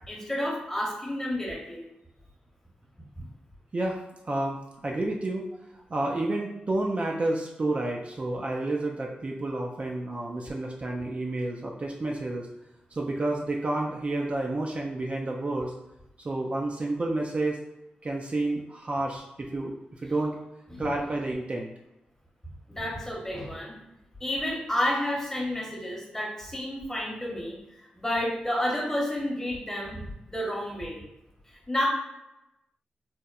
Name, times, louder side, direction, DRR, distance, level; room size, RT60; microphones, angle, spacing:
voice 1, 0.1-1.8 3.2-3.3 20.7-20.8 22.7-23.8 24.2-31.0 31.7-31.9, left 1 dB, 15° left, -2 dB, 0.9 m, -31 dB
voice 2, 4.2-4.6 4.8-5.5 5.7-12.5 12.9-15.7 16.2-17.6 18.0-19.7 20.0-20.4 20.8-21.7, right 2 dB, 40° right, -1 dB, 0.3 m, -30 dB
2.9 x 2.1 x 2.3 m, 0.91 s
cardioid pair, 50°, 3 cm